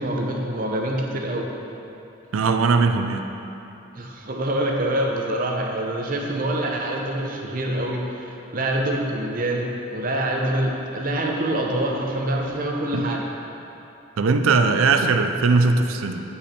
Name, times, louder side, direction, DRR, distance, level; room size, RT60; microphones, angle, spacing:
voice 1, 0.0-1.5 3.9-13.3, right 1 dB, 45° right, 0 dB, 0.7 m, -25 dB
voice 2, 2.3-3.2 12.9-13.1 14.2-16.2, right 4 dB, 85° right, 7 dB, 0.5 m, -19 dB
8.4 x 5.6 x 4.3 m, 2.8 s
head